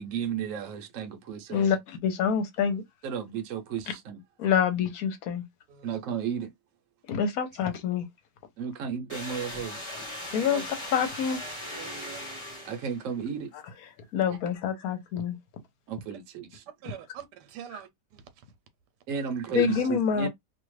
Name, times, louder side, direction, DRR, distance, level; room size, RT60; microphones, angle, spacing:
voice 1, 0.0-1.8 3.0-4.2 5.8-6.5 8.6-9.8 12.6-13.5 15.9-16.6 19.1-20.3, right 7 dB, 60° right, 1.0 m, -33 dB
voice 2, 1.5-2.8 4.4-5.4 7.1-8.1 10.3-11.4 14.1-15.4 17.7-17.8 19.5-20.3, left 7 dB, 65° left, 1.1 m, -26 dB
sound 1, 9.1-13.1, left 1 dB, 20° left, 1.1 m, -39 dB
voice 3, 10.2-10.6 11.8-12.3 16.8-18.2, right 10 dB, 80° right, 1.2 m, -43 dB
2.8 x 2.4 x 3.1 m
omnidirectional pair, 1.8 m